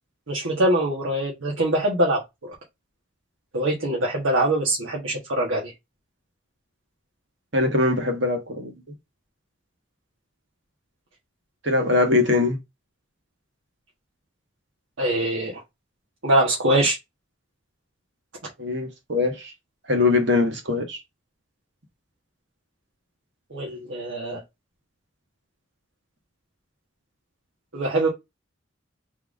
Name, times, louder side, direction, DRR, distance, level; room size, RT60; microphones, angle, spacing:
voice 1, 0.3-2.2 2.5-2.6 3.5-5.7 15.0-15.6 16.2-17.0 23.5-24.4 27.7-28.1, right 1 dB, 90° right, 1.4 m, -23 dB
voice 2, 7.5-8.7 11.6-12.6 18.6-19.5 19.9-21.0, left 3 dB, 65° right, 1.6 m, -22 dB
3.7 x 3.6 x 3.6 m
head